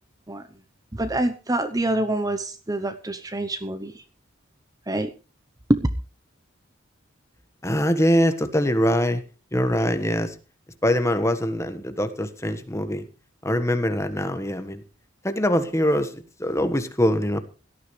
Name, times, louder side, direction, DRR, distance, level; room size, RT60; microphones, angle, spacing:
voice 1, 0.9-4.0 4.9-5.1 5.7-5.9, right 1 dB, 20° right, 10 dB, 0.8 m, -25 dB
voice 2, 7.6-9.2 9.5-10.4 10.8-13.1 13.4-14.8 15.2-17.4, equal, 15° left, 9 dB, 1.4 m, -23 dB
17.5 x 13.0 x 3.3 m, 0.33 s
head